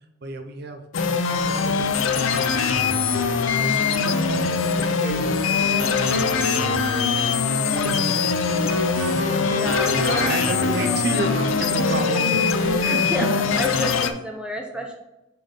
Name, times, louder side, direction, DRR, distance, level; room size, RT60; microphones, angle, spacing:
voice 1, 0.2-3.2 3.6-7.3 7.8-9.1 9.9-13.0, right 3 dB, 50° right, 6 dB, 0.6 m, -32 dB
sound 1, 0.9-14.1, left 5 dB, 70° left, 0.5 m, -22 dB
sound 2, 2.0-14.1, left 1 dB, 45° left, 2.0 m, -45 dB
voice 2, 3.6-4.0 9.4-10.3 10.8-11.2 13.1-14.9, right 1 dB, 5° right, 1 dB, 0.8 m, -31 dB
sound 3, 5.5-14.0, equal, 70° right, 1.4 m, -30 dB
6.7 x 4.3 x 3.7 m, 0.94 s
head